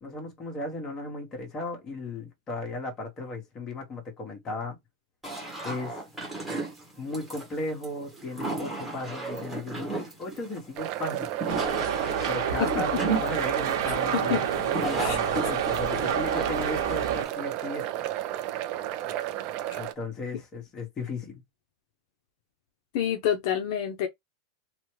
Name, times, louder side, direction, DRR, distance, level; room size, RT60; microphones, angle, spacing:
voice 1, 0.0-4.8 5.6-6.0 7.0-11.3 12.3-17.9 19.8-21.4, left 2 dB, 25° left, 1.3 m, -36 dB
sound 1, 5.2-17.3, right 3 dB, 5° right, 1.2 m, -34 dB
sound 2, 10.8-19.9, right 13 dB, 40° right, 0.4 m, -32 dB
sound 3, 11.5-17.3, right 7 dB, 65° right, 1.0 m, -29 dB
voice 2, 14.1-14.4 15.0-15.5 19.7-19.8 22.9-24.1, left 9 dB, 55° left, 0.6 m, -28 dB
3.0 x 2.1 x 3.0 m
supercardioid pair, 150°, 2 cm